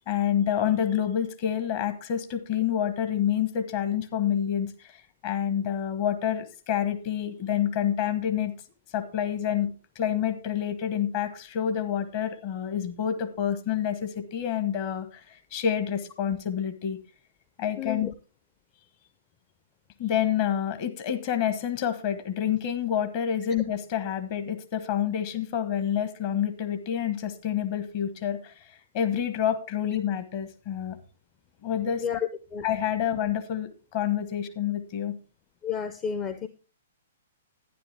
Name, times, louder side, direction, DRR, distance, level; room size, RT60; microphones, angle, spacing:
voice 1, 0.1-4.9 5.2-8.5 8.9-17.0 17.6-18.1 20.0-28.5 28.9-31.0 31.6-32.0 32.6-35.1, left 9 dB, 40° left, 9 dB, 1.3 m, -28 dB
voice 2, 17.8-18.1 32.0-32.7 35.6-36.5, left 7 dB, 25° left, 10 dB, 0.7 m, -31 dB
11.0 x 10.0 x 3.5 m, 0.34 s
figure-of-eight pair, 115°, 0 cm